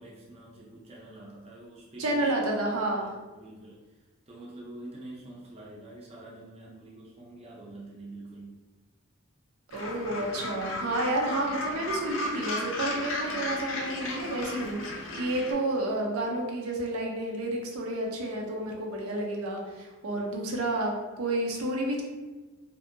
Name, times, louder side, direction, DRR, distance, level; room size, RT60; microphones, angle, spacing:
voice 1, 0.0-2.4 2.9-4.0 4.3-8.5 20.1-20.3, right 2 dB, 30° right, -4 dB, 0.5 m, -46 dB
voice 2, 2.0-3.1 9.7-22.0, right 1 dB, 85° right, 0 dB, 0.5 m, -30 dB
Gull seagull, 9.7-15.5, left 1 dB, 60° left, 0.4 m, -35 dB
2.6 x 2.5 x 2.5 m, 1.2 s
head